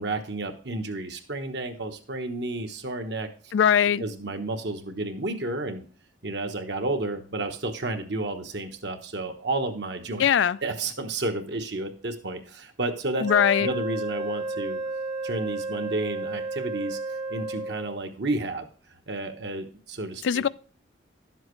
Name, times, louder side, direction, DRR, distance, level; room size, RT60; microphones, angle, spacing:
voice 1, 0.0-3.3 4.0-5.8 6.2-10.3 10.6-13.3 13.6-14.8 15.2-17.0 17.3-18.7 19.1-20.4, right 2 dB, 60° right, 1.2 m, -31 dB
voice 2, 3.5-4.0 10.2-10.6 13.2-13.7 20.2-20.5, left 8 dB, 75° left, 0.4 m, -21 dB
Wind instrument woodwind instrument, 13.2-18.0, right 2 dB, 40° right, 0.9 m, -32 dB
11.5 x 7.4 x 3.2 m
head